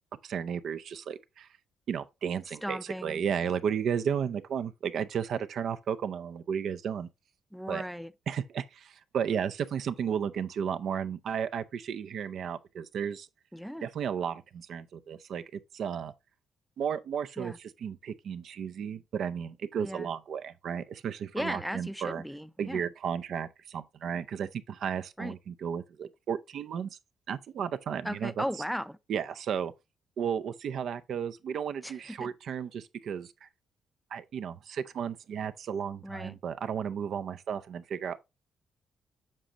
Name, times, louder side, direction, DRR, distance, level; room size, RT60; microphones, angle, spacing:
voice 1, 0.2-1.5 1.9-7.1 7.7-7.8 8.3-13.3 13.8-16.1 16.8-22.2 22.6-26.9 27.3-28.4 29.1-29.7 30.2-33.5 34.1-38.2, right 7 dB, 65° right, 0.6 m, -34 dB
voice 2, 2.6-3.2 7.5-8.1 13.5-13.9 17.4-17.6 19.8-20.1 21.3-22.9 25.2-25.3 28.0-29.0 31.8-32.3 36.0-36.4, equal, ahead, 0.5 m, -36 dB
7.6 x 5.0 x 2.8 m
cardioid pair, 90°, 0 cm